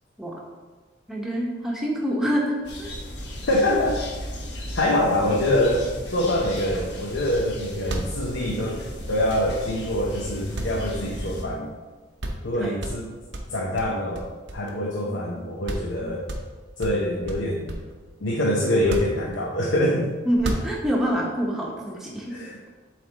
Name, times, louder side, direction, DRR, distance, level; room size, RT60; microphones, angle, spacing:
voice 1, 1.1-2.9 12.6-12.8 20.2-22.4, equal, ahead, -3 dB, 0.9 m, -26 dB
sound 1, 2.6-11.4, left 1 dB, 60° left, 1.0 m, -35 dB
voice 2, 3.5-4.0 4.6-11.7 12.4-13.1 13.5-16.2 16.8-17.8 18.2-20.1 22.3-22.8, left 1 dB, 85° left, -2 dB, 0.8 m, -25 dB
sound 2, 7.9-10.0 10.5-11.6 11.9-12.0 12.2-12.5 12.8-15.0 15.3-15.4 15.7-16.0 16.3-18.0 18.7-19.7 20.3-21.1, right 1 dB, 70° right, 0.8 m, -33 dB
7.4 x 3.3 x 4.0 m, 1.4 s
head